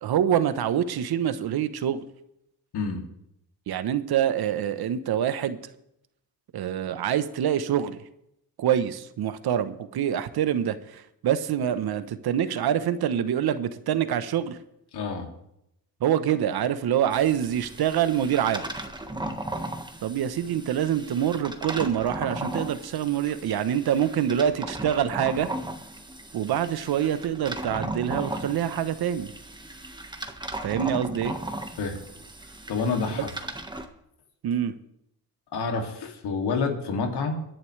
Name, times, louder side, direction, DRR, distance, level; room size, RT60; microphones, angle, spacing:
voice 1, 0.0-2.0 3.7-5.6 6.5-8.0 8.6-14.6 16.0-18.6 20.0-25.5 26.3-29.3 30.6-31.3 33.2-33.3 34.4-34.7, right 9 dB, 70° right, 13 dB, 1.1 m, -25 dB
voice 2, 2.7-3.0 14.9-15.3 31.8-32.0 32.7-33.3 35.5-37.4, left 4 dB, 75° left, 3 dB, 2.7 m, -28 dB
sound 1, 17.1-33.9, right 1 dB, 10° right, 1.6 m, -36 dB
23.0 x 11.0 x 3.3 m, 0.80 s
cardioid pair, 85°, 40 cm